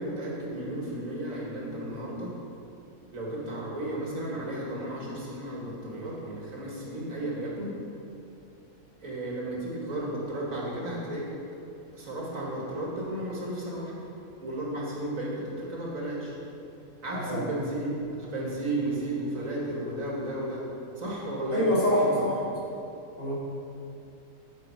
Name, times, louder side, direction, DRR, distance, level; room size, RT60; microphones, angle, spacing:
voice 1, 0.0-2.4 3.1-7.8 9.0-11.4 11.9-14.0 14.4-16.4 17.0-20.7 21.0-22.3, right 1 dB, 75° right, -4 dB, 2.4 m, -33 dB
voice 2, 21.5-22.3 23.2-23.3, equal, 55° left, -8 dB, 3.3 m, -25 dB
9.9 x 9.4 x 4.8 m, 2.6 s
omnidirectional pair, 1.4 m